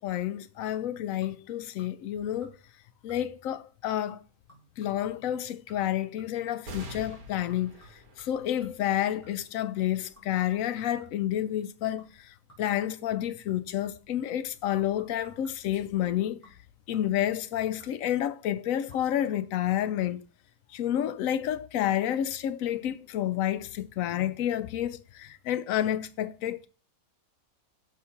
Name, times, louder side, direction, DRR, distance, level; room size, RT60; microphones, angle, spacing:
voice 1, 0.0-2.6 3.0-4.2 4.8-16.4 16.9-20.2 20.7-26.7, left 11 dB, 70° left, 0.9 m, -30 dB
sound 1, 0.7-1.5 1.8-2.1 2.4-2.8 3.1-3.5 4.1-6.5 7.1-9.6 10.2-11.4 12.0-12.2 12.5-14.1 14.8-15.8 16.4-18.2 18.8-19.0 19.3-19.4, right 2 dB, 10° right, 3.6 m, -58 dB
sound 2, 6.6-13.5 14.1-14.2 15.4-15.9, equal, 85° right, 1.9 m, -49 dB
6.7 x 3.6 x 5.6 m
omnidirectional pair, 1.5 m